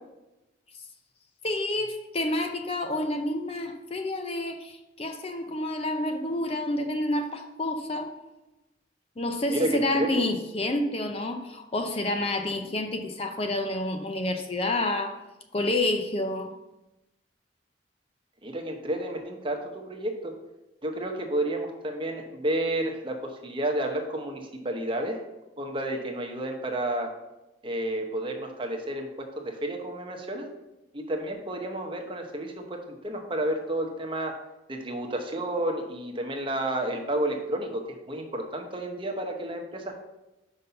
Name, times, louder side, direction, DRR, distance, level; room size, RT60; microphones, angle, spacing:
voice 1, 1.4-8.1 9.2-15.2 15.5-16.5, left 1 dB, 30° left, 6 dB, 0.5 m, -29 dB
voice 2, 9.5-10.3 18.4-20.3 20.8-25.2 25.6-27.1 27.6-30.5 30.9-34.3 34.7-40.0, right 1 dB, 25° right, 3 dB, 0.9 m, -31 dB
5.5 x 5.3 x 5.6 m, 0.98 s
head